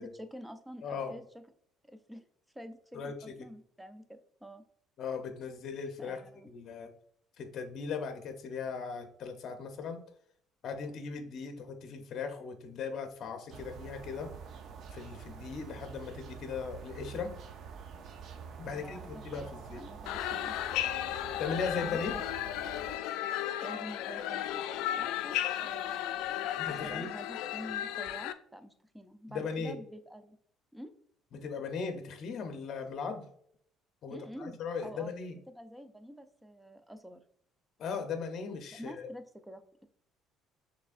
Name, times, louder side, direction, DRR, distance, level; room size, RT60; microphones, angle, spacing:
voice 1, 0.0-1.4 1.9-2.3 2.5-4.6 6.0-6.5 18.6-20.5 21.8-22.3 23.6-30.4 30.7-30.9 34.1-34.6 34.8-35.1 35.5-37.2 38.7-39.9, equal, 5° right, 9 dB, 0.4 m, -47 dB
voice 2, 0.8-1.1 2.9-3.5 5.0-6.2 6.5-6.9 7.4-10.0 10.6-14.3 14.9-17.4 18.6-19.8 21.4-22.2 26.6-27.1 29.3-29.8 31.3-33.3 34.0-35.3 37.8-39.1, left 5 dB, 50° left, 6 dB, 0.7 m, -38 dB
sound 1, 13.5-23.0, right 6 dB, 55° right, 0.5 m, -47 dB
sound 2, 20.1-28.3, left 12 dB, 85° left, 0.3 m, -34 dB
6.1 x 3.2 x 2.4 m, 0.64 s
cardioid pair, 130°, 0 cm